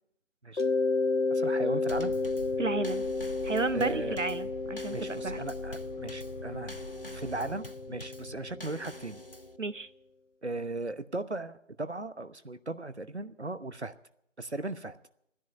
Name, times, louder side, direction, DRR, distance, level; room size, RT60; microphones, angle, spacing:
Mallet percussion, 0.6-9.2, left 3 dB, 75° left, 1.3 m, -32 dB
voice 1, 1.3-2.1 3.7-4.2 4.9-6.7 7.1-9.2 10.4-13.9 14.4-15.0, right 2 dB, 60° right, 13 dB, 1.0 m, -37 dB
Drum kit / Snare drum / Bass drum, 1.9-9.6, equal, 50° left, 0.6 m, -48 dB
sound 1, 1.9-7.6, equal, 45° right, 1.8 m, -45 dB
voice 2, 2.6-3.1 3.4-5.4 9.6-9.9, right 3 dB, 80° right, 15 dB, 0.7 m, -32 dB
13.5 x 10.5 x 9.6 m, 0.74 s
figure-of-eight pair, 180°, 37 cm